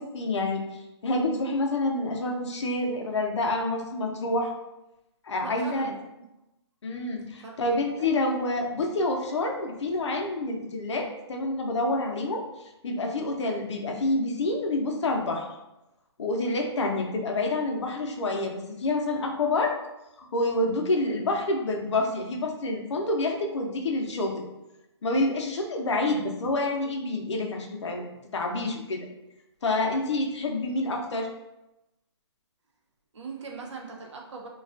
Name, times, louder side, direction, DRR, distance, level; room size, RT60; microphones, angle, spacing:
voice 1, 0.0-4.5 5.2-5.9 6.8-15.5 16.2-19.7 20.2-24.5 25.0-28.0 28.3-29.1 29.6-31.3, left 2 dB, 80° left, 2 dB, 0.6 m, -28 dB
voice 2, 5.4-6.2 7.4-7.7 8.0-8.1 33.1-34.5, right 4 dB, 85° right, 1 dB, 0.6 m, -40 dB
2.3 x 2.2 x 2.4 m, 0.92 s
hypercardioid pair, 155°, 15 cm